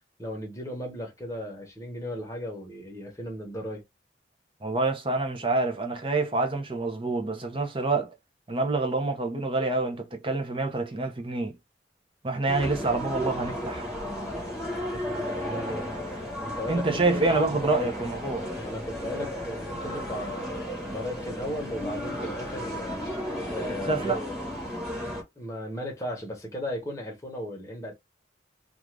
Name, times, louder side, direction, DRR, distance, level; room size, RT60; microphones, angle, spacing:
voice 1, 0.2-3.8 14.9-16.0 16.4-18.1 18.6-23.1 23.5-24.6 25.4-27.9, equal, 20° left, 0.9 m, -36 dB
voice 2, 4.6-8.1 8.5-11.6 12.2-13.9 16.7-18.5 23.6-24.2, right 3 dB, 30° right, 0.6 m, -27 dB
sound 1, 12.5-25.2, equal, 5° right, 1.1 m, -34 dB
2.4 x 2.4 x 3.2 m
head